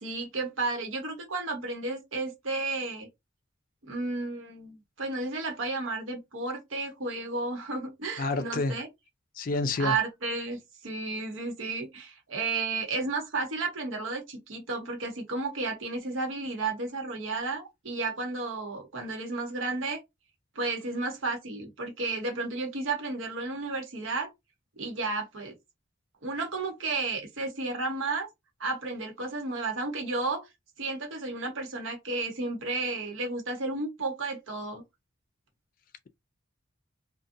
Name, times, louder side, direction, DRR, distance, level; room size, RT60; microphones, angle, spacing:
voice 1, 0.0-3.1 3.9-8.9 9.8-20.0 20.5-24.3 24.8-25.5 26.2-28.3 28.6-30.5 30.8-34.8, right 3 dB, 80° right, 1.0 m, -32 dB
voice 2, 8.2-8.8 9.4-9.9, left 3 dB, 45° left, 0.3 m, -28 dB
2.6 x 2.2 x 2.5 m
head